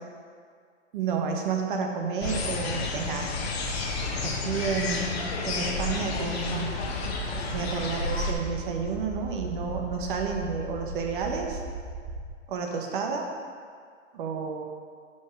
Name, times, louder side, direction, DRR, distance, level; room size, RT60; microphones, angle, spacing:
voice 1, 0.9-3.3 4.2-7.0 7.5-11.6 12.5-13.2 14.1-14.6, right 5 dB, 40° right, 2 dB, 1.0 m, -31 dB
sound 1, 2.2-8.3, left 3 dB, 50° left, 1.0 m, -31 dB
sound 2, 7.0-12.3, right 2 dB, 10° right, 1.1 m, -37 dB
5.5 x 5.0 x 4.8 m, 2.1 s
hypercardioid pair, 135°, 38 cm